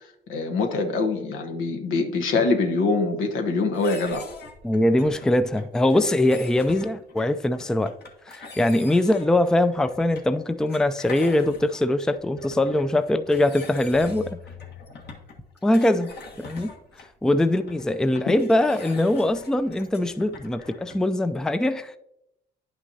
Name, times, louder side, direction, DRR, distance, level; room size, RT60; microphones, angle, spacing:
voice 1, 0.3-4.2, left 3 dB, 85° left, 1.2 m, -24 dB
sound 1, 3.7-21.1, left 4 dB, 55° left, 1.4 m, -44 dB
voice 2, 4.6-7.9 8.3-14.4 15.6-16.1 16.4-16.7 17.2-22.0, left 1 dB, 5° left, 0.4 m, -22 dB
10.0 x 5.8 x 2.8 m
cardioid pair, 90°, 20 cm